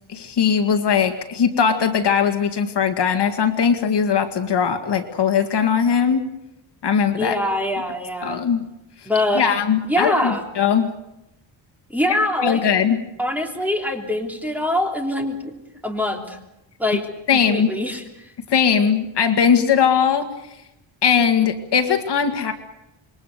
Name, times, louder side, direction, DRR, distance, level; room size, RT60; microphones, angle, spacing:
voice 1, 0.1-6.2 6.8-7.4 8.2-8.6 9.3-10.9 12.4-13.0 17.3-17.7 18.5-20.3 21.0-22.5, left 7 dB, 55° left, 6 dB, 2.1 m, -19 dB
voice 2, 7.2-8.4 9.0-9.5 9.9-10.4 11.9-12.6 13.2-16.4 16.8-17.0 17.3-18.3, left 1 dB, 5° right, 2 dB, 3.3 m, -24 dB
27.5 x 22.5 x 6.7 m, 0.86 s
wide cardioid pair, 170°, 48 cm